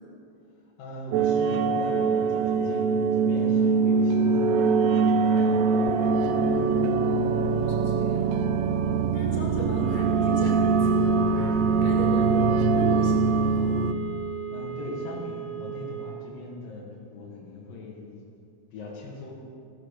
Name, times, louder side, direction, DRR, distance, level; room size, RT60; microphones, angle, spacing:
voice 1, 0.8-5.6 9.3-9.6 11.6-11.9 14.5-18.2 18.7-19.3, left 2 dB, 85° left, -4 dB, 3.4 m, -40 dB
sound 1, 1.1-13.9, right 5 dB, 90° right, 1.5 m, -23 dB
voice 2, 7.0-8.4 9.1-13.8, left 1 dB, 65° left, -1 dB, 4.1 m, -35 dB
sound 2, 9.3-16.3, right 11 dB, 40° right, 2.6 m, -37 dB
15.5 x 10.5 x 6.5 m, 2.5 s
omnidirectional pair, 3.8 m